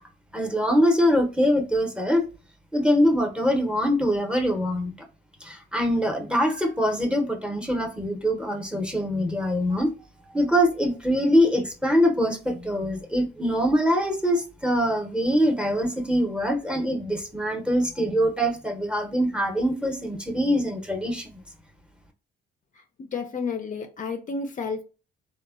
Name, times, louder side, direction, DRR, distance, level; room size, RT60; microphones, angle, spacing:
voice 1, 0.3-2.2 2.7-4.9 5.4-9.9 10.3-21.3, equal, 5° right, 0.6 m, -23 dB
voice 2, 22.8-24.8, left 5 dB, 40° left, 0.4 m, -31 dB
3.0 x 2.1 x 2.3 m
cardioid pair, 90°, 20 cm